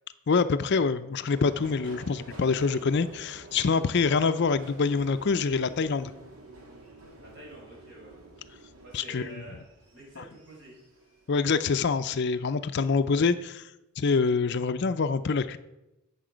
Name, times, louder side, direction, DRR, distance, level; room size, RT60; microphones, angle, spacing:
voice 1, 0.3-6.1 8.9-9.4 10.2-10.3 11.3-13.7 14.0-15.6, left 4 dB, 50° left, 12 dB, 0.4 m, -25 dB
Subway metro underground, 1.3-12.0 12.4-13.1 13.4-13.5, right 2 dB, 75° right, 2.1 m, -49 dB
voice 2, 7.2-8.1 8.8-9.6 9.9-10.7, right 2 dB, 55° right, -3 dB, 4.8 m, -47 dB
17.0 x 6.9 x 5.1 m, 0.97 s
head